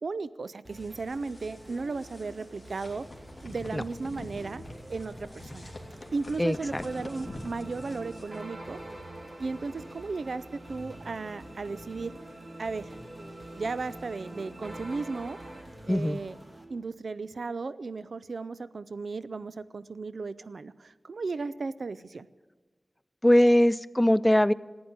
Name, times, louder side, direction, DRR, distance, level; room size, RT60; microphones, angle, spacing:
voice 1, 0.0-3.1 3.4-4.6 4.9-5.7 6.1-8.8 9.4-12.2 12.6-13.0 13.6-15.4 15.8-16.4 16.7-22.3, right 4 dB, 85° right, 16 dB, 0.4 m, -35 dB
sound 1, 0.6-16.6, right 1 dB, 25° right, 2.1 m, -49 dB
sound 2, 0.7-8.4, left 1 dB, 40° left, 2.5 m, -46 dB
voice 2, 6.4-6.9 15.9-16.2 23.2-24.5, left 1 dB, 10° left, 18 dB, 0.3 m, -21 dB
sound 3, 6.5-15.6, right 1 dB, 65° right, 2.6 m, -45 dB
15.0 x 9.4 x 8.8 m, 1.3 s
wide cardioid pair, 80°, 0 cm